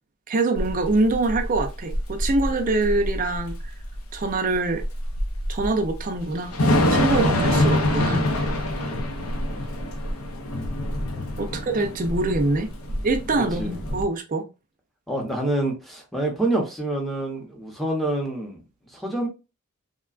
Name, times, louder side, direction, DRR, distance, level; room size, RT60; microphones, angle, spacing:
voice 1, 0.3-3.5 4.1-4.8 5.5-6.6 6.9-8.2 11.4-12.7 13.0-14.4, right 2 dB, 40° right, 0.5 m, -24 dB
Thunder / Rain, 0.6-14.0, left 1 dB, 80° left, 0.7 m, -25 dB
voice 2, 13.4-13.8 15.1-18.6 18.9-19.3, right 1 dB, ahead, 0.7 m, -27 dB
3.5 x 2.2 x 2.4 m
head